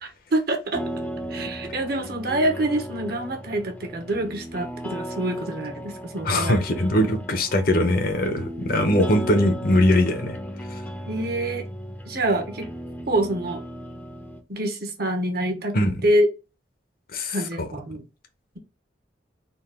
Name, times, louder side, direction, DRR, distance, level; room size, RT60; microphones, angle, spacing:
voice 1, 0.0-0.8 1.3-6.6 11.1-11.6 12.1-12.7 13.1-13.6 14.5-16.3 17.3-18.1, right 1 dB, 55° right, 0.9 m, -26 dB
sound 1, 0.7-14.4, equal, 10° left, 0.5 m, -36 dB
voice 2, 6.2-10.4 15.7-15.9 17.1-17.7, left 1 dB, 50° left, 0.7 m, -21 dB
3.9 x 2.4 x 3.6 m
head